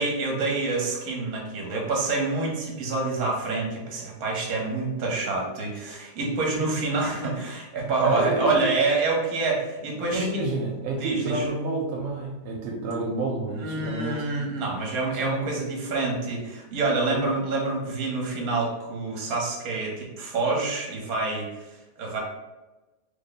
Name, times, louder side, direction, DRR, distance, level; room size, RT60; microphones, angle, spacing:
voice 1, 0.0-10.4 11.0-11.5 13.5-22.2, right 3 dB, 60° right, -1 dB, 1.2 m, -27 dB
voice 2, 8.0-8.6 10.1-14.2 15.2-15.4, right 2 dB, 80° right, 0 dB, 1.2 m, -29 dB
3.3 x 2.1 x 3.9 m, 1.1 s
omnidirectional pair, 1.9 m